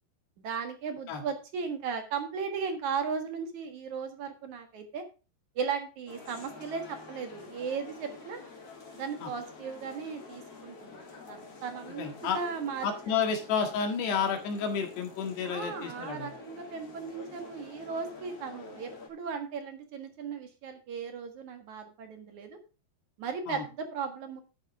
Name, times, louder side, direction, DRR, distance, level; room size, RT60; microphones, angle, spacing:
voice 1, 0.4-5.0 5.6-8.4 8.9-12.9 15.4-22.6 23.2-24.4, right 6 dB, 55° right, 6 dB, 2.5 m, -36 dB
sound 1, 6.1-19.1, left 4 dB, 35° left, 4.0 m, -48 dB
voice 2, 12.0-12.4 12.8-16.3 23.5-23.6, left 6 dB, 75° left, 5 dB, 3.9 m, -31 dB
12.0 x 9.2 x 3.6 m, 0.32 s
omnidirectional pair, 4.9 m